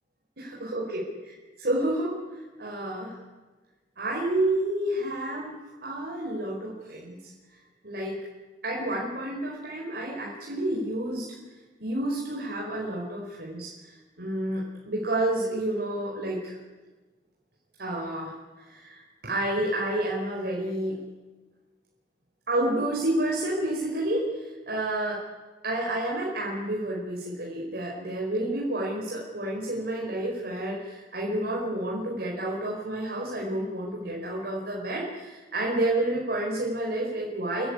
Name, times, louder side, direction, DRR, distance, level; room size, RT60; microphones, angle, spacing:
voice 1, 0.4-3.1 4.0-7.2 7.8-8.2 8.6-11.4 11.8-16.6 17.8-21.0 22.5-25.2 25.6-37.7, right 1 dB, 60° right, -3 dB, 4.6 m, -30 dB
28.0 x 15.0 x 9.9 m, 1.3 s
head